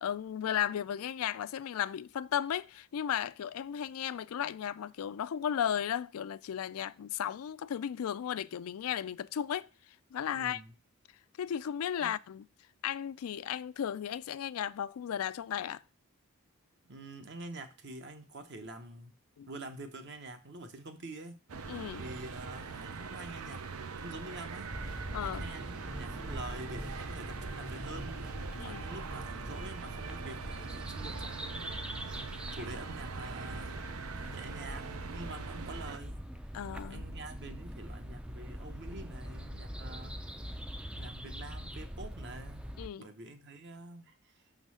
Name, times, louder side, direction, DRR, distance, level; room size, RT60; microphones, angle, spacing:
voice 1, 0.0-9.7 10.1-10.6 11.4-12.5 12.8-15.8 19.4-19.5 21.7-22.1 25.1-25.5 28.5-28.8 36.5-37.0 42.8-43.1, left 9 dB, 75° left, 0.3 m, -35 dB
voice 2, 10.3-10.7 12.0-12.1 16.9-19.1 19.5-21.6 22.0-31.9 32.5-33.8 34.3-36.2 36.9-40.2 40.9-42.7 43.0-44.4, right 2 dB, 50° right, 1.0 m, -46 dB
sound 1, 21.5-36.0, right 5 dB, 80° right, 0.6 m, -42 dB
sound 2, 24.7-42.9, equal, 5° right, 0.4 m, -43 dB
6.3 x 3.9 x 6.2 m
head